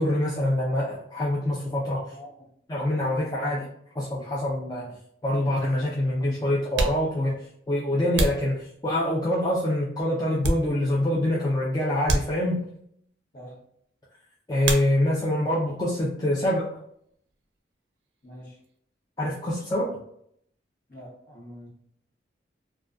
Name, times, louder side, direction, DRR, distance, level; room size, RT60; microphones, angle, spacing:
voice 1, 0.0-2.0 2.7-3.7 4.0-5.0 5.2-7.3 7.7-12.6 14.5-16.7 19.2-20.0, left 1 dB, 20° left, -6 dB, 0.4 m, -25 dB
voice 2, 2.1-2.5 3.2-3.5 13.3-13.7 18.2-18.6 20.9-21.7, equal, 50° left, -5 dB, 1.0 m, -45 dB
sound 1, 4.9-5.0 5.9-6.0 6.6-9.2 9.8-11.1 11.4-11.6 12.0-12.9 14.6-15.4 15.7-16.4 16.6-18.8, right 2 dB, 75° right, 0.4 m, -31 dB
2.5 x 2.2 x 2.3 m, 0.70 s
head